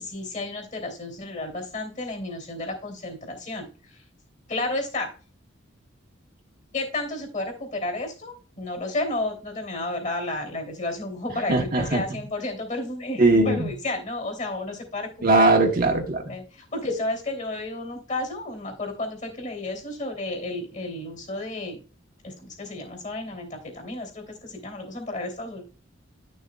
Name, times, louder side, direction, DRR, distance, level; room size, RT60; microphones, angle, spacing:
voice 1, 0.0-4.0 4.5-5.1 6.7-15.5 16.3-21.8 22.2-25.6, left 2 dB, 40° left, 3.0 m, -32 dB
voice 2, 11.5-12.0 13.2-13.7 15.2-16.3, right 2 dB, 45° right, 1.2 m, -20 dB
11.5 x 6.5 x 2.4 m
head